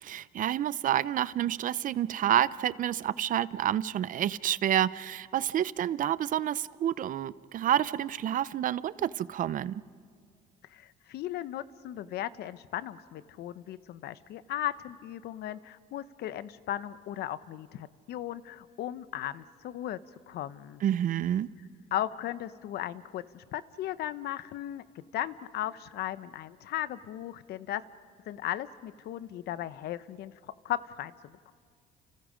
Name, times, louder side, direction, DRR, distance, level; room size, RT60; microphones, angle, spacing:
voice 1, 0.0-9.8 20.8-21.5, right 11 dB, 50° right, 17 dB, 0.6 m, -29 dB
voice 2, 10.7-20.0 20.3-20.8 21.9-27.8 28.3-31.5, left 12 dB, 70° left, 14 dB, 0.9 m, -36 dB
30.0 x 29.5 x 5.1 m, 2.1 s
cardioid pair, 110°, 17 cm